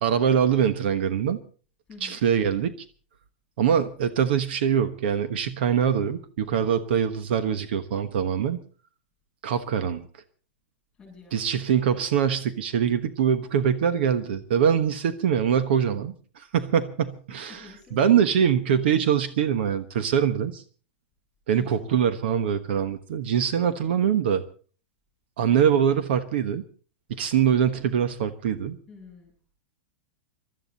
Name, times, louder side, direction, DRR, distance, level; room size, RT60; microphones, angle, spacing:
voice 1, 0.0-1.4 2.0-2.7 3.6-8.6 9.4-10.0 11.3-17.6 17.9-20.6 21.5-24.4 25.4-26.6 27.1-28.8, right 8 dB, 60° right, 12 dB, 1.2 m, -23 dB
voice 2, 1.9-2.2 10.9-11.5 17.3-18.1 21.5-21.9 28.9-29.5, left 4 dB, 10° left, 2 dB, 7.0 m, -49 dB
22.5 x 13.0 x 4.1 m, 0.39 s
supercardioid pair, 170°, 6 cm